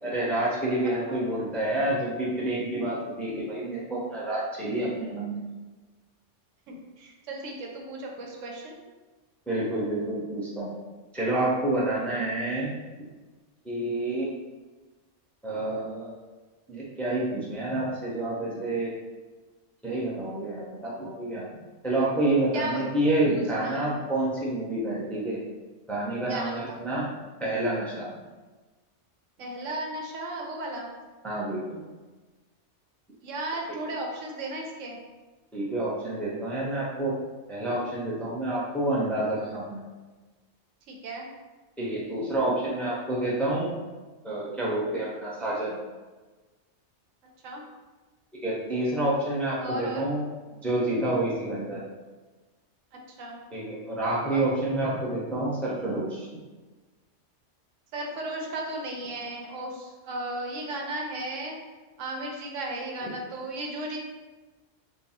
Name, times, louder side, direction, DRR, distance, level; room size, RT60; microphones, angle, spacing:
voice 1, 0.0-5.4 9.5-10.7 11.1-12.7 13.6-14.3 15.4-16.1 16.7-18.9 19.8-21.5 21.8-25.4 25.9-27.1 27.4-28.1 31.2-31.8 33.7-33.8 35.5-37.1 37.5-39.8 41.8-43.7 44.2-45.7 48.4-50.2 50.6-51.8 53.5-56.3, right 1 dB, ahead, -6 dB, 0.6 m, -28 dB
voice 2, 1.1-1.5 6.7-8.7 22.5-22.8 23.3-23.8 26.3-26.8 29.4-30.9 33.2-35.0 40.9-41.3 47.4-47.6 49.6-50.0 53.2-53.4 54.2-54.4 57.9-61.6 62.0-64.0, right 1 dB, 85° right, 0 dB, 1.1 m, -35 dB
3.6 x 2.3 x 4.1 m, 1.2 s
omnidirectional pair, 1.3 m